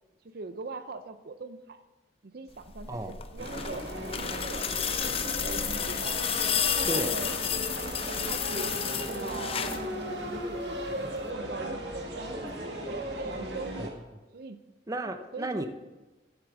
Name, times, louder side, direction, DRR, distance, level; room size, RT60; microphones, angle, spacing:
voice 1, 0.2-1.8 2.2-3.9 4.2-6.2 6.7-9.5 9.9-14.0 14.3-14.6 15.3-15.7, right 3 dB, 60° right, 10 dB, 0.5 m, -42 dB
Buzz, 2.5-8.7, equal, 80° left, 2.2 m, -47 dB
sound 1, 3.1-9.9 11.2-11.3, left 8 dB, 35° left, 0.6 m, -31 dB
sound 2, 3.4-13.9, right 1 dB, 80° right, 1.8 m, -36 dB
voice 2, 6.9-7.2 13.8-13.9 14.9-15.7, right 1 dB, 20° right, 8 dB, 0.7 m, -33 dB
7.9 x 7.6 x 6.9 m, 1.1 s
head